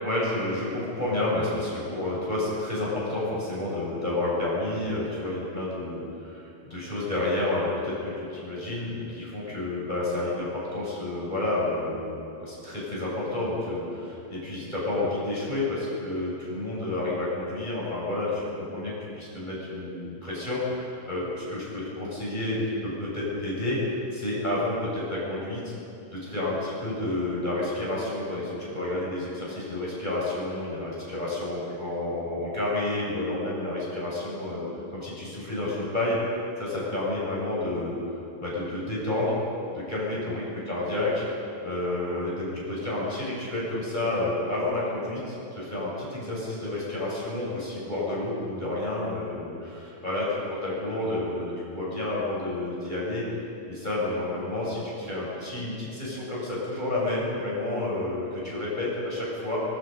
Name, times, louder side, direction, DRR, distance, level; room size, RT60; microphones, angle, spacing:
voice 1, 0.0-23.8 24.1-25.7 26.1-34.7 34.9-36.2 36.6-38.0 38.4-39.3 39.7-41.2 41.6-53.2 53.7-59.6, left 2 dB, 10° left, -6 dB, 7.5 m, -30 dB
25.5 x 22.5 x 5.5 m, 2.8 s
omnidirectional pair, 5.6 m